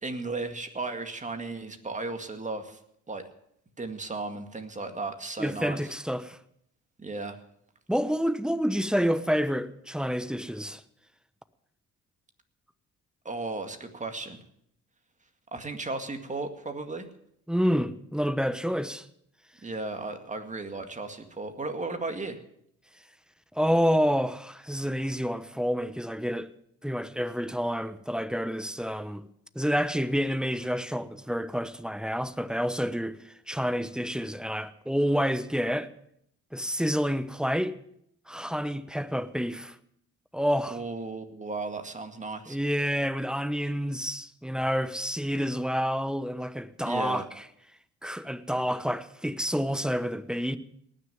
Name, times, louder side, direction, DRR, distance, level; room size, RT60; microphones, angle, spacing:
voice 1, 0.0-2.8 3.1-3.2 3.8-5.8 7.0-7.4 13.2-14.4 15.5-17.1 19.6-22.4 40.7-42.6 46.8-47.2, right 3 dB, 25° right, 2.0 m, -35 dB
voice 2, 5.4-6.4 7.9-10.8 17.5-19.1 23.5-26.5 26.8-29.2 29.5-35.9 36.5-37.7 38.3-39.8 40.3-40.8 42.5-47.4 48.0-50.6, equal, 5° right, 0.9 m, -28 dB
19.0 x 6.7 x 9.2 m
cardioid pair, 90°, 30 cm